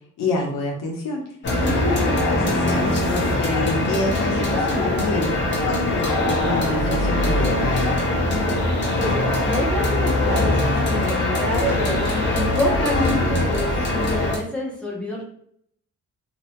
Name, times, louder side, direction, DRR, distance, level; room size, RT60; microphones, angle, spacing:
voice 1, 0.2-5.3 5.6-8.0, left 2 dB, 90° left, -1 dB, 0.9 m, -27 dB
sound 1, 1.4-14.4, left 1 dB, 35° left, 0.7 m, -22 dB
voice 2, 1.5-1.8 8.2-8.6 9.0-15.2, left 1 dB, 5° left, -3 dB, 0.6 m, -28 dB
2.7 x 2.2 x 2.8 m, 0.65 s
wide cardioid pair, 155°, 31 cm